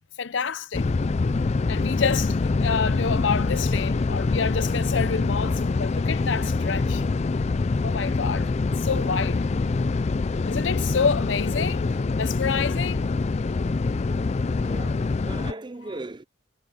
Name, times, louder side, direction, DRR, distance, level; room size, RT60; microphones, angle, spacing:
voice 1, 0.2-0.9 1.7-7.0 7.8-8.5 8.8-9.4 10.5-13.1, left 6 dB, 65° left, 0.7 m, -28 dB
sound 1, 0.7-15.5, left 3 dB, 35° left, 0.4 m, -25 dB
voice 2, 14.6-16.2, right 2 dB, 25° right, 0.6 m, -38 dB
head